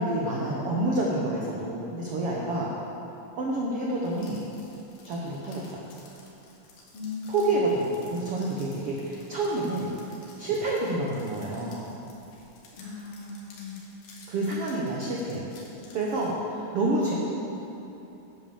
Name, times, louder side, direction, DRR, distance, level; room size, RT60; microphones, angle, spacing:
voice 1, 0.0-2.7 3.4-4.4 5.0-5.8 7.3-9.9 10.4-11.9 14.3-15.4 15.9-17.1, right 2 dB, 80° right, -3 dB, 1.3 m, -28 dB
sound 1, 4.0-16.3, left 3 dB, 90° left, 3.7 m, -54 dB
voice 2, 6.9-7.6 12.7-13.8, left 4 dB, 55° left, -5 dB, 1.9 m, -38 dB
11.0 x 8.2 x 7.0 m, 3.0 s
omnidirectional pair, 4.3 m